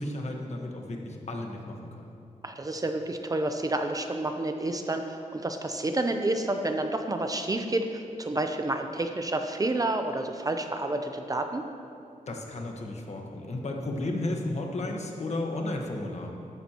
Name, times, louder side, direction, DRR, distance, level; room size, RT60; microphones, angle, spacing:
voice 1, 0.0-2.1 12.3-16.3, left 2 dB, 55° left, 1 dB, 1.3 m, -33 dB
voice 2, 2.4-11.6, right 2 dB, 25° right, 6 dB, 0.6 m, -29 dB
13.5 x 11.5 x 3.0 m, 2.6 s
wide cardioid pair, 135°, 13 cm